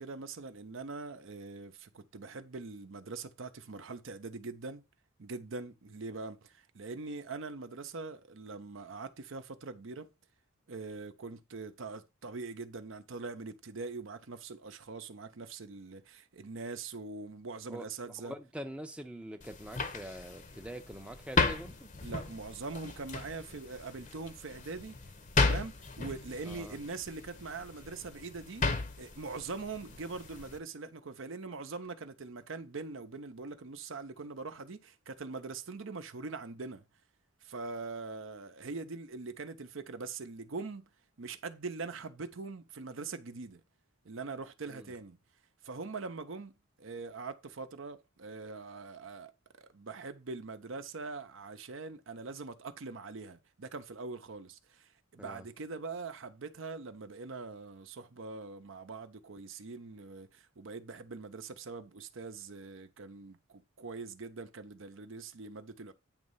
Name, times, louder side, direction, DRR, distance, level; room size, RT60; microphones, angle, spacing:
voice 1, 0.0-4.8 5.2-10.1 10.7-18.3 22.0-25.0 25.4-28.7 29.0-36.9 37.4-40.9 41.2-43.6 44.0-45.2 45.6-49.3 49.6-65.9, right 3 dB, 65° right, 0.7 m, -43 dB
voice 2, 18.2-21.9 26.5-26.8 44.7-44.9 55.2-55.5, right 1 dB, 5° right, 0.6 m, -44 dB
sound 1, 19.4-30.6, left 3 dB, 35° left, 0.8 m, -35 dB
8.9 x 3.2 x 5.4 m
head